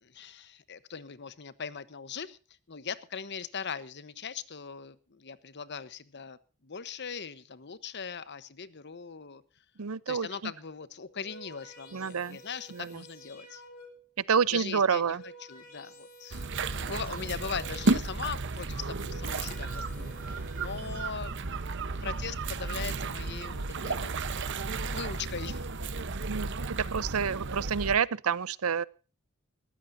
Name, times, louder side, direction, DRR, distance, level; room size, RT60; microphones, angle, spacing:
voice 1, 0.0-2.4 2.7-9.4 10.1-13.6 14.5-21.4 22.0-24.1 24.9-25.7, left 6 dB, 55° left, 15 dB, 1.0 m, -40 dB
voice 2, 9.8-10.5 11.9-12.4 12.7-13.0 14.3-15.2 26.2-28.9, right 6 dB, 85° right, 20 dB, 0.7 m, -28 dB
sound 1, 11.0-14.2 14.9-18.1 18.8-21.1, right 1 dB, 85° left, 4.7 m, -52 dB
sound 2, 16.3-28.0, right 3 dB, 60° right, 1.0 m, -33 dB
21.5 x 15.0 x 2.7 m, 0.33 s
head